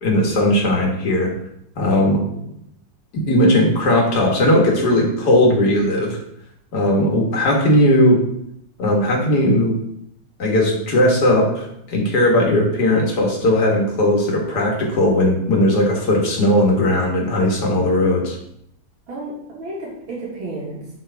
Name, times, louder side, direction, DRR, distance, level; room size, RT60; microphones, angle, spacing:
voice 1, 0.0-1.3 1.8-2.2 3.1-6.2 6.7-8.2 8.8-9.8 10.4-18.4, left 1 dB, 55° left, 0 dB, 2.0 m, -17 dB
voice 2, 2.1-2.5 19.1-21.0, right 2 dB, 80° right, -5 dB, 2.4 m, -32 dB
10.5 x 3.5 x 3.5 m, 0.76 s
omnidirectional pair, 2.2 m